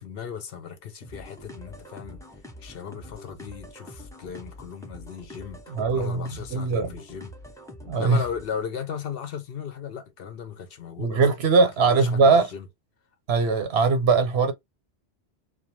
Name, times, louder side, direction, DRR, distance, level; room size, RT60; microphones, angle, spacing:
voice 1, 0.0-2.2 2.6-7.3 8.0-11.2 11.6-12.7, left 7 dB, 65° left, 0.8 m, -36 dB
sound 1, 1.0-8.6, left 1 dB, 5° left, 0.5 m, -45 dB
voice 2, 5.7-6.9 7.9-8.2 11.0-12.5 13.3-14.5, right 4 dB, 70° right, 1.0 m, -21 dB
2.4 x 2.2 x 2.9 m
omnidirectional pair, 1.1 m